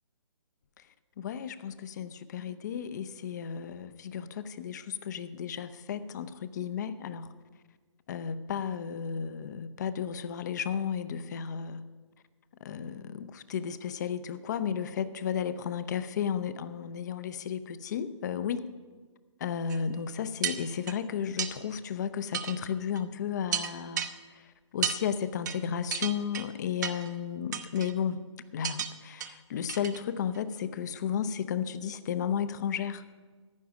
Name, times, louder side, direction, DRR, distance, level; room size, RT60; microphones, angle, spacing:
voice 1, 1.2-7.3 8.1-11.8 12.6-18.6 19.4-28.2 28.5-33.0, left 8 dB, 35° left, 14 dB, 0.7 m, -33 dB
sound 1, 19.7-19.8 20.4-21.0 21.4-21.5 22.3-22.6 23.0-23.1 23.5-24.1 24.8-25.0 25.5-25.6 25.9-26.5 26.8-27.1 27.5-27.9 28.6-28.9 29.2-29.3 29.7-30.0 30.3-30.4, right 9 dB, 35° right, 0.8 m, -33 dB
15.0 x 10.5 x 5.1 m, 1.4 s
figure-of-eight pair, 135°, 16 cm